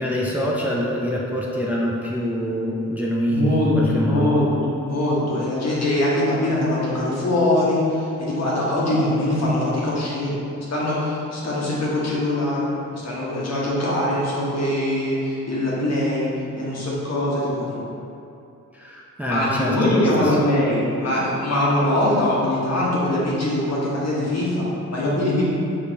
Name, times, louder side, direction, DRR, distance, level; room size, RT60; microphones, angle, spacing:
voice 1, 0.0-4.4 18.7-20.3, equal, 5° right, -4 dB, 0.5 m, -25 dB
voice 2, 3.3-4.5 4.8-10.4 10.7-12.7 12.9-16.3 16.5-17.8 19.2-25.4, left 1 dB, 50° left, -6 dB, 1.3 m, -22 dB
4.9 x 3.2 x 2.9 m, 2.7 s
supercardioid pair, 50°, 33 cm